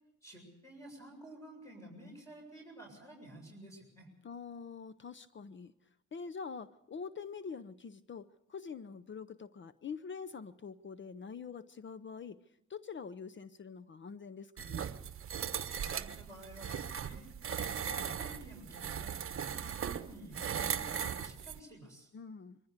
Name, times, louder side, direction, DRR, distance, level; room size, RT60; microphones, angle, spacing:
voice 1, 0.2-4.1 15.7-17.3 17.8-22.1, right 1 dB, 10° left, 1 dB, 7.3 m, -52 dB
voice 2, 4.2-5.7 6.1-12.4 12.7-14.9 22.1-22.6, left 5 dB, 40° left, 14 dB, 0.8 m, -45 dB
sound 1, 14.6-21.6, right 8 dB, 45° right, 1.1 m, -38 dB
23.5 x 15.0 x 8.1 m, 0.85 s
cardioid pair, 90°, 30 cm